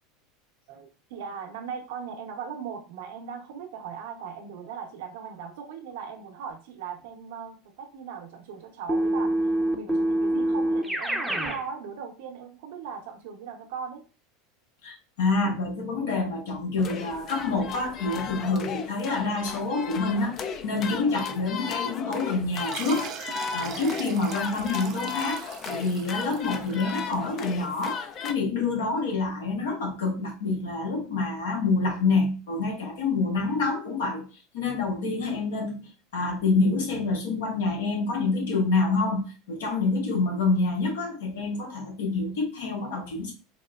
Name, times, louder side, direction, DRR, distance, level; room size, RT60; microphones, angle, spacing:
voice 1, 0.7-9.4 9.7-14.0, right 6 dB, 75° right, 0.8 m, -38 dB
Keyboard (musical), 8.9-11.6, right 1 dB, 5° right, 0.6 m, -25 dB
voice 2, 14.8-34.3 34.5-43.3, left 3 dB, 80° left, 1.1 m, -27 dB
sound 1, 16.8-28.3, left 6 dB, 40° left, 0.4 m, -36 dB
sound 2, 22.5-27.7, right 8 dB, 50° right, 0.4 m, -40 dB
4.2 x 2.1 x 2.3 m
hypercardioid pair, 90°, 0 cm